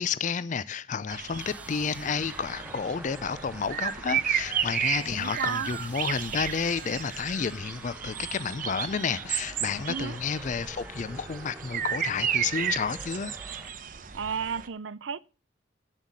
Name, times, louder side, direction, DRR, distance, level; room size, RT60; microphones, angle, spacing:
voice 1, 0.0-13.4, left 6 dB, 40° left, 0.4 m, -31 dB
sound 1, 1.1-14.7, right 9 dB, 45° right, 0.8 m, -33 dB
sound 2, 1.4-13.7, right 2 dB, 10° right, 0.6 m, -46 dB
voice 2, 5.1-5.7 9.9-10.2 14.1-15.2, right 6 dB, 75° right, 0.5 m, -33 dB
8.3 x 7.7 x 7.2 m
head